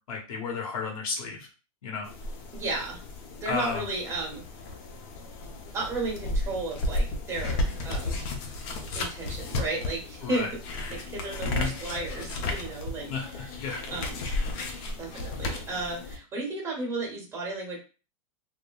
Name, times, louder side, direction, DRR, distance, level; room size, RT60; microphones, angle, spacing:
voice 1, 0.1-1.5 1.8-2.1 3.4-3.8 10.2-10.5 11.4-11.7 13.1-13.8, left 5 dB, 75° left, -1 dB, 1.1 m, -32 dB
sound 1, 2.0-16.2, left 2 dB, 45° left, 0.6 m, -33 dB
voice 2, 2.5-3.0 3.4-4.4 5.7-8.2 8.9-10.5 10.9-13.6 13.9-14.3 15.0-17.8, right 2 dB, 15° right, -3 dB, 1.3 m, -34 dB
3.6 x 2.2 x 2.3 m, 0.33 s
supercardioid pair, 150°, 18 cm